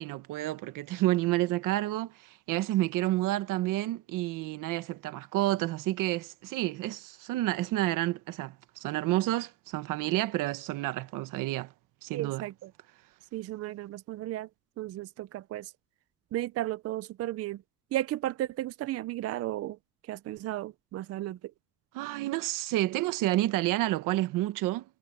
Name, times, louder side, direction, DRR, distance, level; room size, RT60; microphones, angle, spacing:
voice 1, 0.0-11.7 12.0-12.5 21.9-24.8, right 16 dB, 85° right, 1.4 m, -30 dB
voice 2, 12.1-12.7 13.3-14.5 14.8-15.7 16.3-17.6 17.9-19.8 20.0-21.4, right 14 dB, 50° right, 0.6 m, -34 dB
cardioid pair, 135°, 32 cm